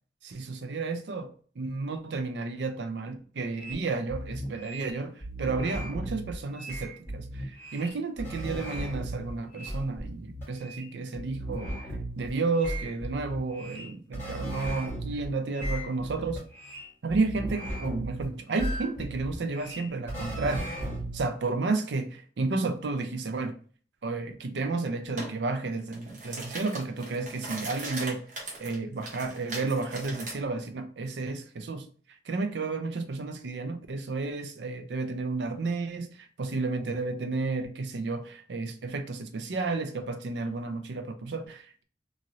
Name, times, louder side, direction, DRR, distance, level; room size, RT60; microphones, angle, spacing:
voice 1, 0.2-11.9 12.2-16.4 17.0-20.7 21.1-23.5 24.0-28.2 28.6-31.9 32.3-41.8, right 3 dB, 80° right, 0.5 m, -32 dB
sound 1, 3.6-3.7 4.1-4.9 5.2-7.9 8.2-10.8 11.2-12.3 12.6-15.3 15.5-18.2 18.5-21.2, right 1 dB, 15° left, 1.3 m, -36 dB
sound 2, 25.2-25.3 25.8-30.4, right 2 dB, 45° right, 0.8 m, -39 dB
3.0 x 2.6 x 2.6 m
head